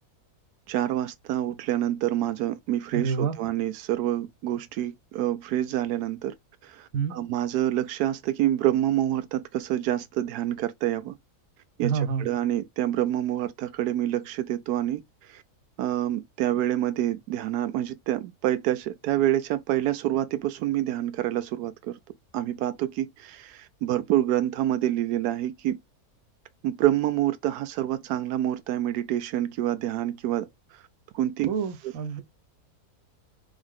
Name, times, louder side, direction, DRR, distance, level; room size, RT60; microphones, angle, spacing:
voice 1, 0.7-6.3 6.6-11.2 11.8-11.9 12.2-15.0 15.3-15.4 15.8-22.0 22.3-25.8 26.6-30.5 31.1-31.5, right 13 dB, 90° right, 1.1 m, -27 dB
voice 2, 2.9-3.3 6.9-7.2 11.8-12.2 31.5-32.2, right 6 dB, 65° right, 1.2 m, -27 dB
3.6 x 3.6 x 3.6 m
omnidirectional pair, 1.6 m